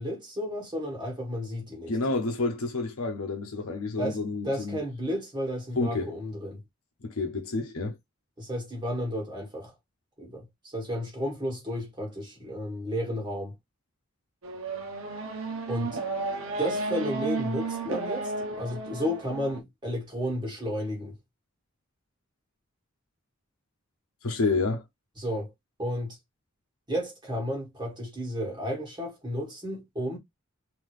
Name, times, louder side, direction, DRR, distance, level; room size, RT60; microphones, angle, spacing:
voice 1, 0.0-2.0 4.0-6.6 8.4-9.7 10.2-13.5 15.7-16.0 16.6-21.1 25.2-25.5 25.8-26.2 26.9-30.2, equal, 20° right, 1.7 m, -32 dB
voice 2, 1.9-4.8 5.8-6.1 7.0-8.0 24.2-24.8, left 3 dB, 80° left, 0.9 m, -29 dB
Race car auto racing / Accelerating revving vroom, 14.4-19.6, right 3 dB, 70° right, 0.9 m, -33 dB
3.7 x 2.8 x 3.1 m
head